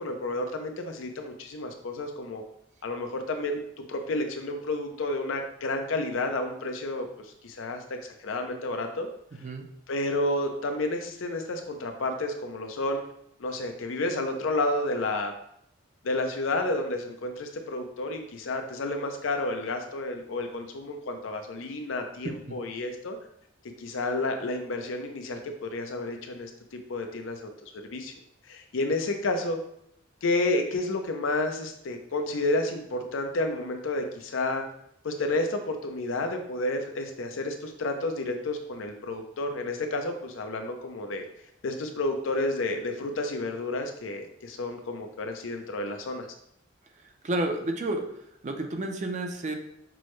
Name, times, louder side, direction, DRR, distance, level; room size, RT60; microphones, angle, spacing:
voice 1, 0.0-2.4 2.8-3.6 3.9-9.1 9.9-13.0 13.4-15.3 16.0-23.2 23.8-28.1 28.5-29.6 30.2-34.6 35.0-41.3 41.6-46.3, left 2 dB, 80° left, 5 dB, 0.5 m, -31 dB
voice 2, 9.3-9.6 22.5-22.6 47.2-48.1 48.4-49.5, right 2 dB, 35° right, 3 dB, 0.4 m, -30 dB
6.0 x 2.1 x 3.1 m, 0.73 s
head